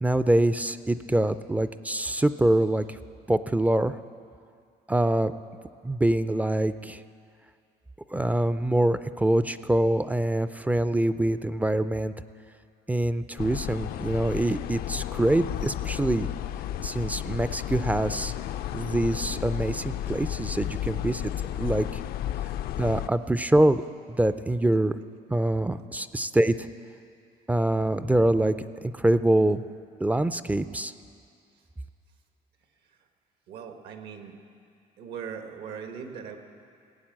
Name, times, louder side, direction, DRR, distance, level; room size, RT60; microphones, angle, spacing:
voice 1, 0.0-3.0 3.3-4.0 4.9-5.3 5.8-7.0 8.1-12.1 12.9-16.3 16.8-18.3 18.7-21.3 21.6-22.0 22.8-23.8 24.1-25.0 25.3-26.7 27.5-28.5 28.9-29.6 30.0-30.9, right 1 dB, 10° right, 13 dB, 0.3 m, -24 dB
sound 1, 13.4-23.1, left 12 dB, 65° left, 0.4 m, -33 dB
voice 2, 33.5-34.4 35.0-36.4, right 7 dB, 80° right, 5 dB, 1.5 m, -40 dB
17.5 x 8.6 x 7.5 m, 2.4 s
cardioid pair, 110°, 17 cm